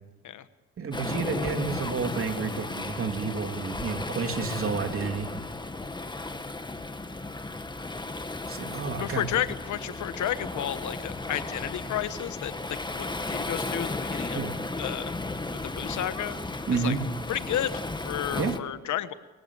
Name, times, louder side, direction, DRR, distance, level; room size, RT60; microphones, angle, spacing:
voice 1, 0.8-5.3 8.5-9.2 14.3-14.5 16.7-17.0 18.3-18.5, right 5 dB, 45° right, 5 dB, 3.1 m, -30 dB
Waves surf, 0.9-18.6, left 2 dB, 15° left, 1.6 m, -35 dB
voice 2, 9.0-14.4 14.8-15.1 15.5-16.4 16.7-17.0 17.3-19.1, left 11 dB, 75° left, 13 dB, 1.3 m, -32 dB
29.5 x 16.0 x 8.6 m, 1.2 s
cardioid pair, 90°, 30 cm